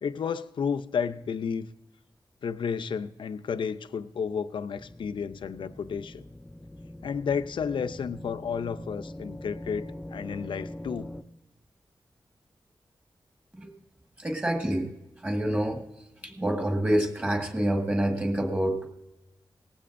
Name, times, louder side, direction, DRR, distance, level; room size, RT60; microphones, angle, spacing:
voice 1, 0.0-1.7 2.4-6.2 7.0-11.1, left 6 dB, 80° left, 12 dB, 0.5 m, -32 dB
sound 1, 4.8-11.2, left 1 dB, 10° left, 0.4 m, -42 dB
voice 2, 14.2-14.9 15.2-15.8 16.2-18.9, right 1 dB, 20° right, 3 dB, 1.6 m, -27 dB
18.5 x 15.0 x 2.6 m, 0.95 s
wide cardioid pair, 160°, 8 cm